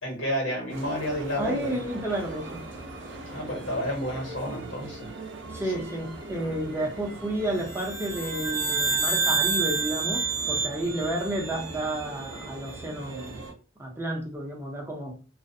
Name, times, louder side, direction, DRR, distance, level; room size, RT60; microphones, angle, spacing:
voice 1, 0.0-1.8 3.2-5.1, equal, 85° left, -1 dB, 1.2 m, -30 dB
sound 1, 0.7-13.5, right 2 dB, 65° right, 0.5 m, -41 dB
voice 2, 1.4-2.6 5.5-13.3 13.8-15.2, right 1 dB, 15° right, 0 dB, 0.5 m, -31 dB
sound 2, 7.7-12.2, right 4 dB, 50° left, 0.7 m, -28 dB
2.4 x 2.1 x 2.6 m, 0.37 s
head